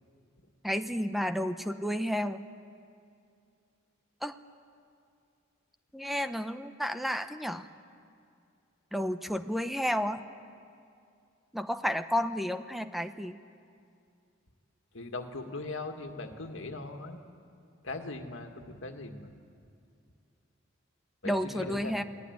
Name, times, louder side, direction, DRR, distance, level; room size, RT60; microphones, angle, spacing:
voice 1, 0.6-2.4 4.2-4.3 5.9-7.7 8.9-10.2 11.5-13.4 21.2-22.0, equal, ahead, 9 dB, 0.8 m, -31 dB
voice 2, 14.9-17.2 17.8-19.3 21.2-22.0, left 2 dB, 75° left, 5 dB, 2.0 m, -39 dB
27.5 x 18.5 x 9.5 m, 2.4 s
head